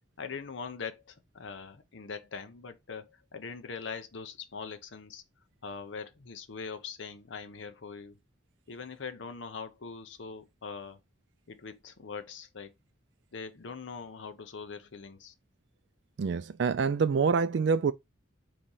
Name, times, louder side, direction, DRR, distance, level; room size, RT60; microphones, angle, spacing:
voice 1, 0.2-5.2 5.6-8.2 8.7-11.0 11.5-12.7 13.3-15.3, left 5 dB, 70° left, 0.7 m, -42 dB
voice 2, 16.2-17.9, right 5 dB, 60° right, 0.3 m, -26 dB
4.1 x 3.1 x 3.8 m
head